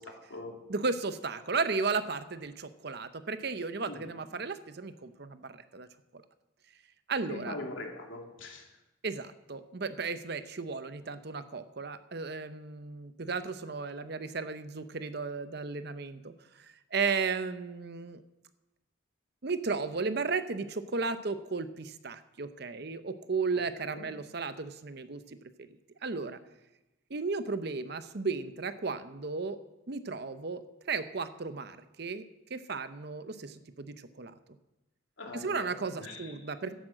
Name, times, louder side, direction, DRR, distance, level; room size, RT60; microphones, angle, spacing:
voice 1, 0.0-0.6 3.8-4.1 7.3-8.7 23.8-24.1 35.2-35.7 36.0-36.3, left 2 dB, 75° left, 1 dB, 3.0 m, -42 dB
voice 2, 0.7-5.9 6.1-6.2 7.1-7.6 9.0-18.2 19.4-25.7 26.0-26.4 27.1-29.6 29.9-32.2 32.5-34.3 35.3-36.7, right 4 dB, 50° right, 11 dB, 0.7 m, -35 dB
11.5 x 10.5 x 7.6 m, 0.98 s
head